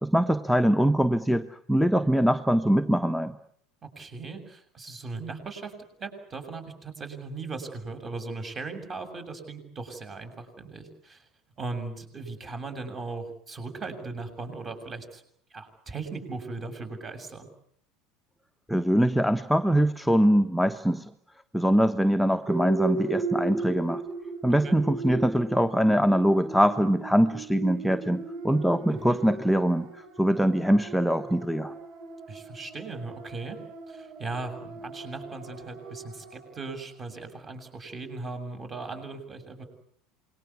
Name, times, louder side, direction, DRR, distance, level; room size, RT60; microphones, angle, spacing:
voice 1, 0.0-3.3 18.7-21.0 21.5-24.0 24.4-29.9 30.2-31.7, equal, ahead, 6 dB, 1.2 m, -23 dB
voice 2, 4.0-5.7 6.0-11.2 11.6-15.2 15.5-17.5 24.6-24.8 28.9-29.2 32.3-33.6 33.9-39.7, right 3 dB, 30° right, 7 dB, 7.3 m, -38 dB
sound 1, 22.5-36.7, right 3 dB, 55° right, 7.7 m, -37 dB
28.0 x 21.5 x 8.4 m, 0.66 s
figure-of-eight pair, 70°, 0 cm